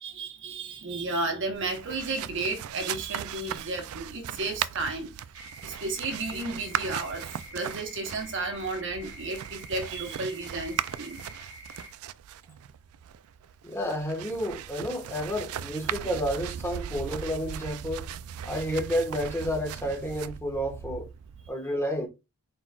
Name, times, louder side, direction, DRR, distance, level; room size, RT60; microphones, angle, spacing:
voice 1, 0.0-5.1 5.6-11.2, right 3 dB, 60° right, 1.1 m, -33 dB
sound 1, 1.5-21.5, right 9 dB, 85° right, 0.3 m, -38 dB
sound 2, 5.3-11.9, equal, 15° right, 1.3 m, -47 dB
voice 2, 13.6-18.1 18.4-21.1 21.5-22.1, equal, 10° left, 1.3 m, -30 dB
4.4 x 4.1 x 2.3 m
head